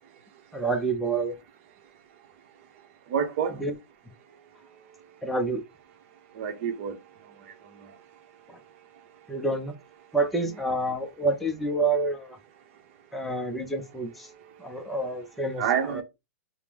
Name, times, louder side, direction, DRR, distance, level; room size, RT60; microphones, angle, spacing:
voice 1, 0.5-1.4 3.6-3.7 5.2-5.6 8.5-8.6 9.3-9.7 10.1-12.4 13.1-14.3 14.6-16.0, right 2 dB, ahead, 0.5 m, -28 dB
voice 2, 3.1-3.6 6.4-6.9 7.8-7.9 15.6-16.0, right 8 dB, 45° right, 0.8 m, -27 dB
4.4 x 2.0 x 3.4 m
hypercardioid pair, 145°, 9 cm